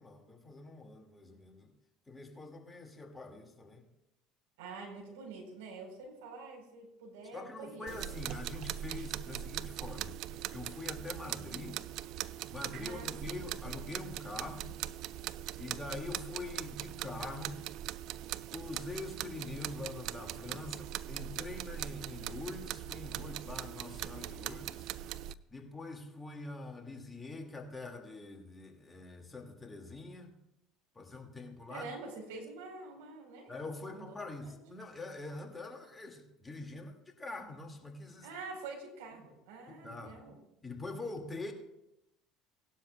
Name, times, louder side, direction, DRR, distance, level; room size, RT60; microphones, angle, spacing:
voice 1, 0.0-1.7 2.1-3.9 7.3-11.8 12.5-14.8 15.6-17.6 18.5-24.9 25.5-30.3 31.0-31.9 33.5-38.3 39.7-40.3 40.6-41.5, left 3 dB, 20° left, 3 dB, 2.1 m, -44 dB
voice 2, 4.6-7.9 12.8-13.4 31.7-33.5 33.9-34.2 34.4-34.6 38.2-40.4, right 3 dB, 75° right, 2 dB, 4.0 m, -46 dB
sound 1, 7.9-25.3, right 12 dB, 60° right, 0.4 m, -41 dB
18.5 x 12.0 x 2.3 m, 0.86 s
hypercardioid pair, 70°, 0 cm